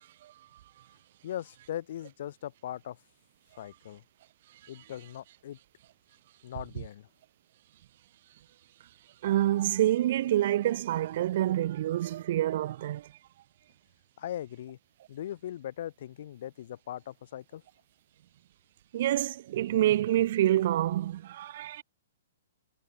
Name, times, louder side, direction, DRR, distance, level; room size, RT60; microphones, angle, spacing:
voice 1, 1.2-3.0 3.6-4.0 4.7-5.6 6.4-7.1 14.2-14.8 15.1-17.6, left 11 dB, 45° left, 1.5 m, -39 dB
voice 2, 9.2-13.1 18.9-21.8, right 13 dB, 40° right, 0.6 m, -27 dB
hypercardioid pair, 175°, 0 cm